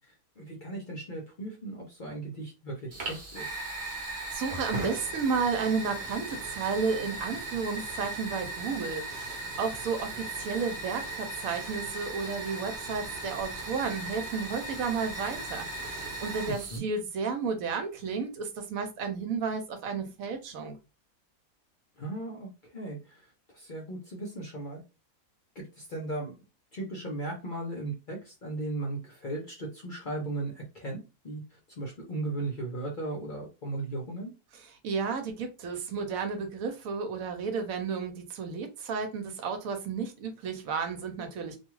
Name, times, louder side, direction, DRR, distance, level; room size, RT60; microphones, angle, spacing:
voice 1, 0.4-3.5 16.5-16.8 22.0-24.8 25.6-26.4 26.7-34.3, right 2 dB, 50° left, 0.6 m, -37 dB
Fire, 2.9-16.8, right 2 dB, 50° right, 1.0 m, -38 dB
voice 2, 4.3-20.7 34.8-41.6, right 5 dB, 75° right, 1.0 m, -32 dB
2.4 x 2.3 x 3.0 m
omnidirectional pair, 1.5 m